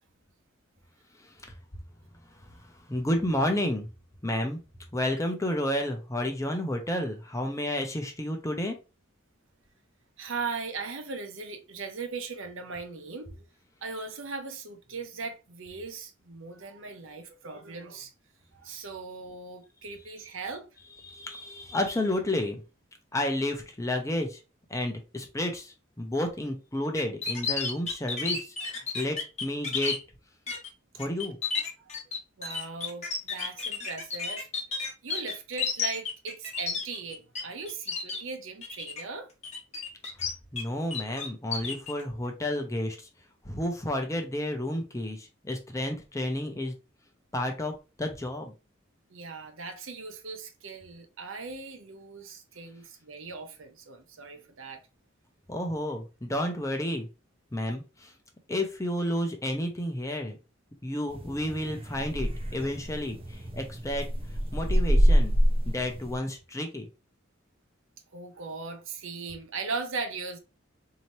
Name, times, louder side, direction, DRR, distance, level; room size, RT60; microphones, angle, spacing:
voice 1, 2.9-3.9 4.2-4.6 4.9-8.8 21.0-22.6 23.1-24.4 24.7-30.0 31.0-31.4 40.5-43.0 43.4-46.8 47.3-47.7 48.0-48.5 55.5-57.1 57.5-58.1 58.5-60.4 60.8-64.1 64.5-65.4 65.6-66.9, left 1 dB, 15° left, 0.7 m, -31 dB
voice 2, 10.2-13.5 13.8-18.1 18.5-20.7 31.8-31.9 32.4-34.5 35.0-39.3 49.1-54.8 68.1-70.4, right 4 dB, 75° right, 0.8 m, -38 dB
sound 1, 27.0-30.0 30.5-30.7 31.0-37.4 37.7-38.2 38.6-39.0 39.4-40.6 40.9-41.9, left 5 dB, 35° left, 1.1 m, -32 dB
sound 2, 61.1-66.2, equal, 25° right, 0.6 m, -26 dB
4.1 x 2.8 x 3.1 m
head